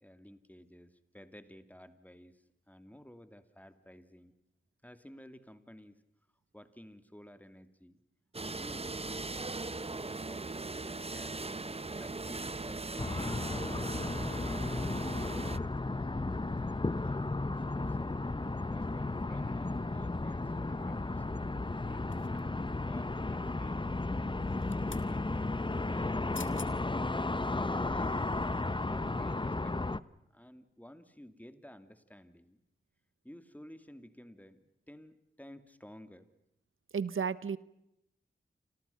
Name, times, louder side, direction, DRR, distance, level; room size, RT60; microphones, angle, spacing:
voice 1, 0.0-4.3 4.8-6.0 6.5-8.0 8.4-15.7 16.6-17.3 17.7-24.0 24.5-26.1 26.6-27.0 27.4-28.2 28.5-30.0 30.3-32.6 33.2-36.3, equal, 5° left, 10 dB, 2.6 m, -54 dB
sound 1, 8.3-15.6, right 3 dB, 30° right, 0.9 m, -39 dB
sound 2, 13.0-30.0, left 2 dB, 25° left, 0.9 m, -34 dB
sound 3, 22.1-22.7 24.4-25.1 26.1-26.2 26.3-26.7 27.3-27.4, left 5 dB, 70° left, 1.9 m, -48 dB
voice 2, 36.9-37.6, right 6 dB, 85° right, 17 dB, 1.0 m, -32 dB
29.0 x 26.5 x 5.7 m, 0.80 s
wide cardioid pair, 55°, 20 cm